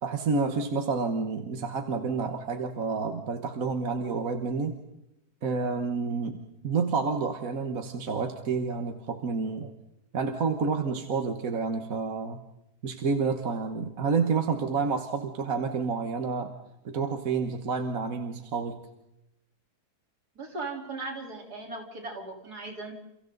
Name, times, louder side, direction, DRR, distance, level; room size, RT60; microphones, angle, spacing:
voice 1, 0.0-4.8 5.4-9.7 10.1-12.4 12.8-16.5 16.9-18.9, right 5 dB, 60° right, 6 dB, 1.7 m, -29 dB
voice 2, 20.4-22.9, right 3 dB, 75° right, 1 dB, 4.5 m, -38 dB
30.0 x 29.5 x 4.0 m, 0.89 s
omnidirectional pair, 1.7 m